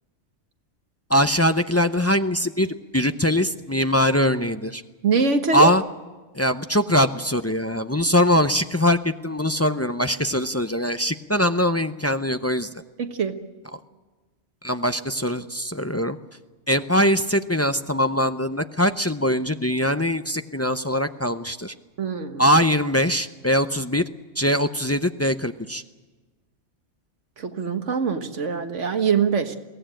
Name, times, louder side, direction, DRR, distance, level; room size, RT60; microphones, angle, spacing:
voice 1, 1.1-4.8 5.5-5.8 6.3-12.7 14.6-16.2 16.7-21.7 22.4-24.0 24.4-25.8, equal, 20° left, 9 dB, 0.4 m, -22 dB
voice 2, 5.0-5.7 13.0-13.3 22.0-22.4 27.4-29.6, right 5 dB, 90° right, 7 dB, 1.7 m, -23 dB
22.5 x 17.0 x 9.0 m, 1.3 s
omnidirectional pair, 1.2 m